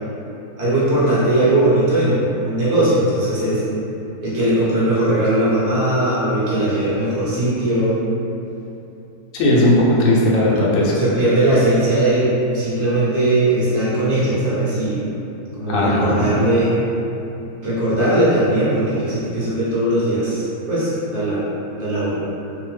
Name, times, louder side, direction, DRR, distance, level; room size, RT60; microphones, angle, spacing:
voice 1, 0.6-3.6 4.2-8.0 11.0-12.3 12.5-15.0 15.5-16.7 17.6-21.5 21.8-22.2, right 1 dB, 45° right, -10 dB, 0.8 m, -19 dB
voice 2, 9.3-11.0 15.7-16.3, left 1 dB, 70° left, -5 dB, 0.9 m, -16 dB
2.6 x 2.1 x 3.1 m, 2.9 s
omnidirectional pair, 1.6 m